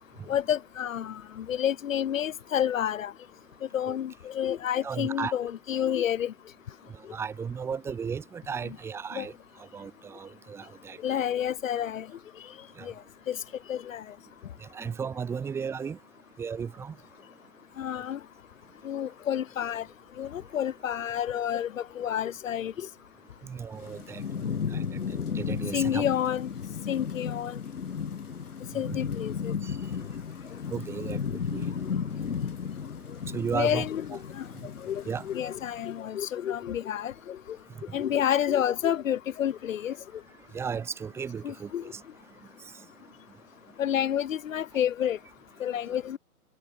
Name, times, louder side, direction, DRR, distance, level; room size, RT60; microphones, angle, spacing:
voice 1, 0.3-3.1 3.7-6.3 8.6-8.8 9.1-9.3 11.0-12.1 12.8-12.9 13.3-13.4 13.7-14.0 17.8-18.2 18.8-19.9 20.2-22.9 25.7-26.5 26.9-27.6 28.7-29.5 33.5-34.5 34.8-37.6 37.9-40.0 41.4-41.8 43.8-45.2 45.6-46.2, left 10 dB, 55° left, 1.1 m, -29 dB
voice 2, 4.8-5.3 7.1-9.3 9.7-11.3 12.8-12.9 14.6-16.0 16.4-16.9 23.4-26.1 28.8-29.0 29.6-29.8 30.7-31.7 33.3-33.9 35.0-35.2 40.5-42.0, right 6 dB, 5° right, 0.9 m, -35 dB
Thunderstorm / Rain, 23.7-36.0, left 6 dB, 75° left, 3.2 m, -34 dB
hypercardioid pair, 140°, 46 cm